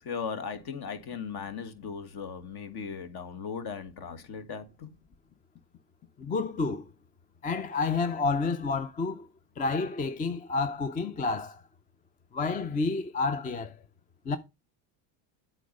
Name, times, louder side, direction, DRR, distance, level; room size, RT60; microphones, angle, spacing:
voice 1, 0.0-4.9, left 6 dB, 50° left, 1.6 m, -37 dB
voice 2, 6.2-6.9 7.4-9.3 9.6-11.6 12.3-13.8 14.3-14.4, left 4 dB, 20° left, 0.4 m, -29 dB
8.4 x 4.0 x 5.2 m
cardioid pair, 120°, 50 cm